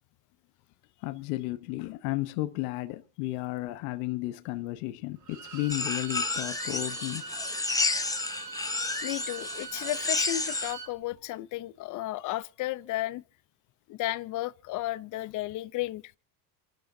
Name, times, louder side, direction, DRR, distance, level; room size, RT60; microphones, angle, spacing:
voice 1, 1.0-7.3, left 18 dB, 65° left, 1.0 m, -33 dB
Bowed string instrument, 5.2-10.9, right 5 dB, 35° right, 2.5 m, -42 dB
sound 1, 5.7-10.7, left 3 dB, 5° left, 0.9 m, -31 dB
voice 2, 9.0-13.2 13.9-16.1, left 16 dB, 40° left, 0.6 m, -33 dB
27.5 x 12.0 x 2.7 m
supercardioid pair, 125°, 49 cm